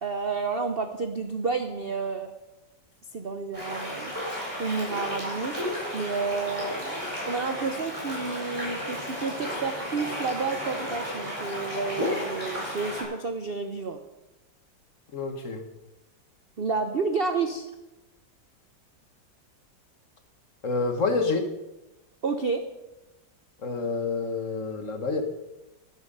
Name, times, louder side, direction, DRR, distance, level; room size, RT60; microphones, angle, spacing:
voice 1, 0.0-2.3 3.1-5.5 5.9-6.9 7.2-14.0 16.6-17.7 22.2-22.6, right 4 dB, 50° right, 7 dB, 0.7 m, -30 dB
sound 1, 3.5-13.0, equal, 15° right, 5.3 m, -33 dB
voice 2, 15.1-15.6 20.6-21.5 23.6-25.2, left 3 dB, 45° left, 6 dB, 1.5 m, -28 dB
12.0 x 11.0 x 5.4 m, 0.98 s
omnidirectional pair, 2.0 m